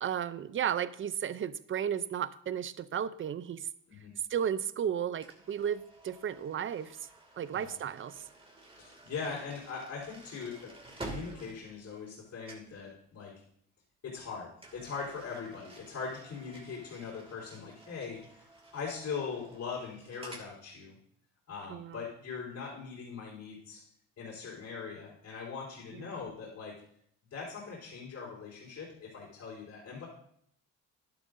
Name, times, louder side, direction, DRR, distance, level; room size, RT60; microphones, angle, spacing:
voice 1, 0.0-3.7 4.3-7.0 7.4-8.2 21.7-22.0 25.9-26.3, right 8 dB, 40° right, 15 dB, 0.6 m, -34 dB
sound 1, 5.2-12.2 12.4-12.8 14.6-20.5, right 2 dB, 20° right, 2.5 m, -50 dB
voice 2, 8.8-13.3 14.0-18.4 18.7-21.0 21.5-23.9 24.2-26.8 27.3-30.1, left 5 dB, 65° left, -7 dB, 4.1 m, -41 dB
11.5 x 11.0 x 2.7 m, 0.68 s
cardioid pair, 90°, 30 cm